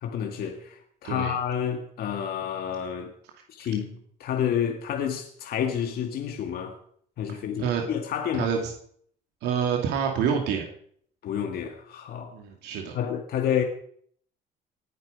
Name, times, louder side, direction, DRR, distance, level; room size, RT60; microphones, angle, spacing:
voice 1, 0.0-3.1 3.5-6.8 7.2-8.5 11.2-12.3 12.9-13.6, left 9 dB, 65° left, 1.9 m, -29 dB
voice 2, 7.3-7.8 8.3-8.7 9.4-10.6 12.3-12.9, right 7 dB, 85° right, 2.6 m, -27 dB
19.5 x 10.5 x 5.2 m
cardioid pair, 110°, 17 cm